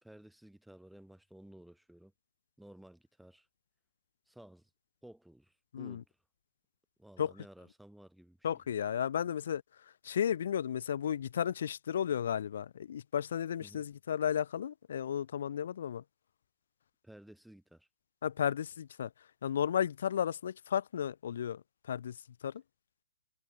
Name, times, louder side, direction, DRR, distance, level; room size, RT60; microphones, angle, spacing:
voice 1, 0.0-2.1 2.6-3.5 4.3-4.7 5.0-6.2 7.0-8.5 13.6-13.9 17.0-17.9, right 1 dB, ahead, 2.0 m, -55 dB
voice 2, 8.4-9.6 10.0-16.0 18.2-19.1 19.4-21.6 21.9-22.1 22.4-22.5, left 9 dB, 45° left, 0.4 m, -33 dB
hypercardioid pair, 180°, 0 cm